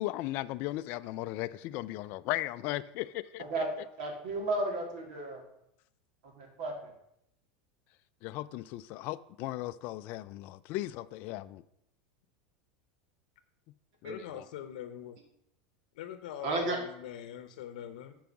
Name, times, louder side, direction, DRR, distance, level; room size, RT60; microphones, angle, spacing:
voice 1, 0.0-3.4 8.2-11.6 14.1-14.4, left 16 dB, 50° left, 0.3 m, -36 dB
voice 2, 4.0-5.4 6.2-6.9 14.0-14.1 16.4-16.8, right 2 dB, 70° right, 2.7 m, -33 dB
voice 3, 14.0-15.2 16.0-18.2, left 10 dB, 85° left, 0.7 m, -42 dB
9.2 x 4.7 x 5.9 m
supercardioid pair, 150°, 4 cm